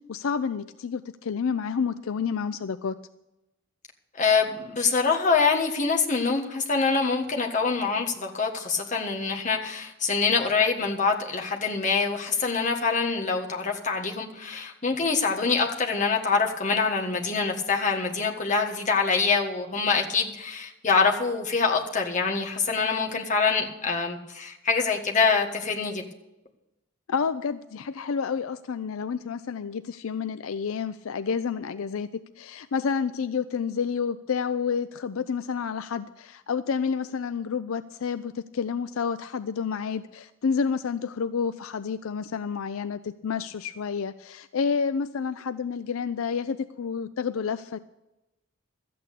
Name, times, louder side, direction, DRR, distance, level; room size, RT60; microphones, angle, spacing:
voice 1, 0.1-3.0 27.1-32.1 32.4-47.8, left 6 dB, 80° left, 12 dB, 0.4 m, -29 dB
voice 2, 4.2-26.0, left 4 dB, 35° left, 1 dB, 1.5 m, -25 dB
13.0 x 8.6 x 6.8 m, 0.95 s
head